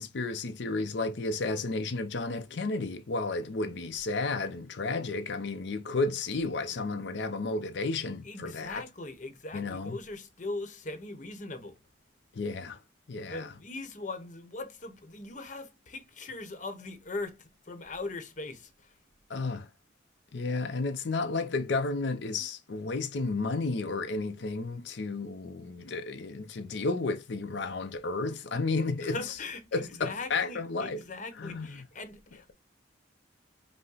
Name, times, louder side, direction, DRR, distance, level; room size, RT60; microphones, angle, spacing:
voice 1, 0.0-8.8 9.5-10.0 12.3-12.8 13.1-13.5 19.3-19.7 20.3-29.4 29.7-31.0 31.3-31.9, left 3 dB, 65° left, 0.5 m, -32 dB
voice 2, 8.2-11.8 13.2-18.7 29.0-32.5, left 2 dB, 40° left, 0.9 m, -40 dB
5.5 x 2.1 x 3.9 m
head